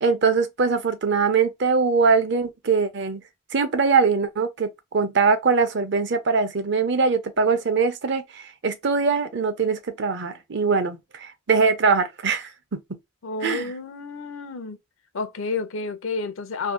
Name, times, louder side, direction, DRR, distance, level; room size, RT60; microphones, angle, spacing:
voice 1, 0.0-3.2 3.5-12.8 13.4-13.7, right 5 dB, 55° right, 0.6 m, -22 dB
voice 2, 13.2-14.8 15.1-16.7, left 4 dB, 75° left, 0.6 m, -30 dB
2.7 x 2.6 x 3.5 m
head